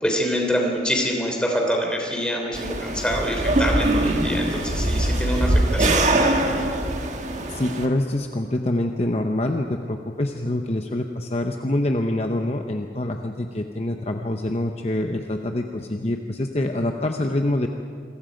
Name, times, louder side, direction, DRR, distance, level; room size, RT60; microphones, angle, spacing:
voice 1, 0.0-6.5, equal, 5° left, 1 dB, 3.3 m, -26 dB
sound 1, 2.5-7.9, right 1 dB, 40° right, 1.6 m, -22 dB
voice 2, 7.5-17.7, left 1 dB, 35° left, 4 dB, 0.8 m, -25 dB
28.5 x 22.5 x 5.2 m, 2.3 s
head